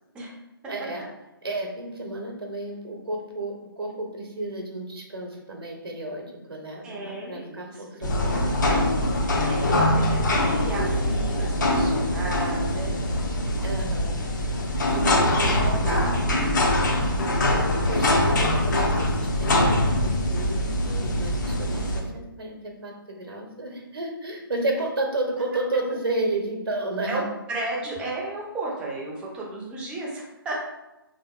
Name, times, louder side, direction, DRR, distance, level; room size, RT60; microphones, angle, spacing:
voice 1, 0.6-1.0 1.4-9.0 13.6-14.2 14.9-16.0 17.9-27.2, right 2 dB, 80° right, 1 dB, 0.7 m, -32 dB
voice 2, 6.8-8.7 9.4-13.7 14.9-16.3 17.2-17.5 27.1-30.6, right 2 dB, 5° right, -3 dB, 0.3 m, -35 dB
sound 1, 8.0-22.0, left 1 dB, 55° left, 0.6 m, -23 dB
3.3 x 2.8 x 2.2 m, 0.98 s
figure-of-eight pair, 140°, 12 cm